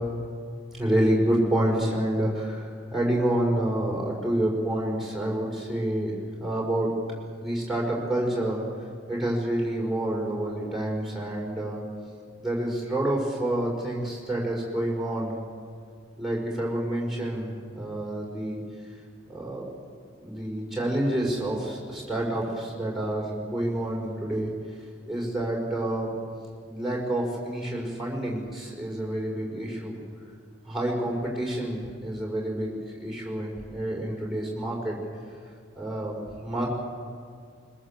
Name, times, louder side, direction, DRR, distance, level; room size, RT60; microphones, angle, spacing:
voice 1, 0.8-7.0 7.4-8.6 9.1-11.8 12.4-15.3 16.2-18.6 19.3-19.7 20.2-24.5 25.1-26.2 26.7-30.0 30.7-35.0 35.8-36.7, right 1 dB, ahead, -4 dB, 5.4 m, -28 dB
23.0 x 21.5 x 7.5 m, 2.1 s
head